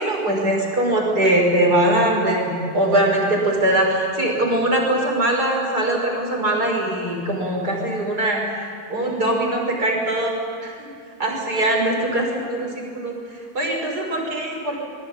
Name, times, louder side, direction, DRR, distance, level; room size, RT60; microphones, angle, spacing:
voice 1, 0.0-8.5 8.9-10.9 11.2-14.8, right 1 dB, 85° right, 0 dB, 6.5 m, -21 dB
26.0 x 23.0 x 8.9 m, 2.2 s
omnidirectional pair, 1.7 m